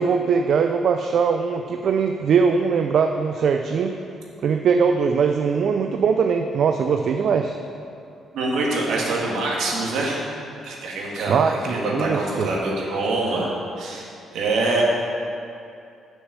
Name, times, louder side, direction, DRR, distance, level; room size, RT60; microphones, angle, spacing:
voice 1, 0.0-3.9 4.4-7.5 11.3-12.5, right 6 dB, 65° right, 5 dB, 0.4 m, -21 dB
voice 2, 8.3-10.2 10.6-13.5 13.8-14.8, right 2 dB, 80° right, -3 dB, 1.9 m, -25 dB
6.5 x 6.2 x 7.5 m, 2.5 s
cardioid pair, 90°, 0 cm